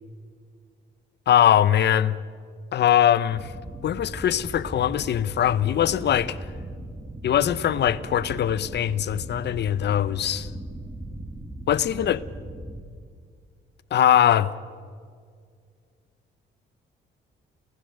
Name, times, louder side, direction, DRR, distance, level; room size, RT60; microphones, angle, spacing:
voice 1, 1.3-2.2 2.7-3.5 3.8-6.4 7.2-10.5 11.7-12.2 13.9-14.5, left 10 dB, 60° left, 0.9 m, -21 dB
sound 1, 3.3-12.8, right 1 dB, 15° right, 2.5 m, -38 dB
29.0 x 15.0 x 6.6 m
cardioid pair, 90°, 20 cm